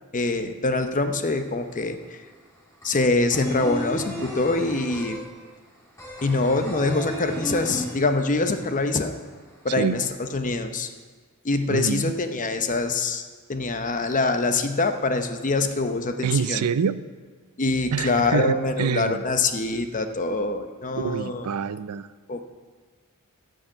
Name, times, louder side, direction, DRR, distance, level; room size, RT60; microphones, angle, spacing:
voice 1, 0.1-2.2 2.8-5.2 6.2-9.1 9.6-10.0 10.3-10.9 11.4-13.2 13.5-16.6 17.6-21.5 22.3-22.4, left 3 dB, 35° left, 7 dB, 0.8 m, -24 dB
sound 1, 1.6-1.7 1.9-8.5 8.8-8.9 9.2-10.0, equal, 15° left, 3.7 m, -34 dB
voice 2, 9.7-10.0 11.7-12.1 16.2-17.0 17.9-19.2 21.0-22.1, right 6 dB, 85° right, 16 dB, 0.5 m, -26 dB
13.0 x 6.5 x 7.7 m, 1.5 s
head